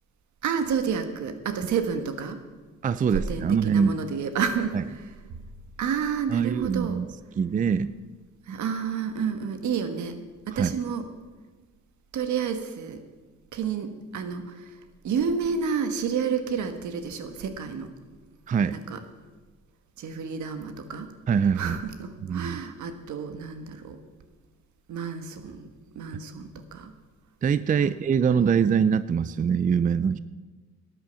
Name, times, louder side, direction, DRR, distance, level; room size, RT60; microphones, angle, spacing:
voice 1, 0.4-2.4 3.1-5.4 5.8-7.0 8.5-10.2 10.5-11.1 12.1-13.0 13.5-14.8 15.0-17.9 18.7-19.0 20.0-21.1 21.5-24.0 24.9-25.6 25.9-26.9 27.8-27.9 28.2-28.7, right 6 dB, 70° right, 8 dB, 1.5 m, -30 dB
voice 2, 2.8-3.9 6.3-7.1 7.4-8.0 10.5-10.7 18.5-18.8 21.3-21.8 22.2-22.6 27.4-30.2, right 6 dB, 25° right, 15 dB, 0.4 m, -23 dB
12.5 x 9.0 x 7.0 m, 1.3 s
cardioid pair, 90°, 30 cm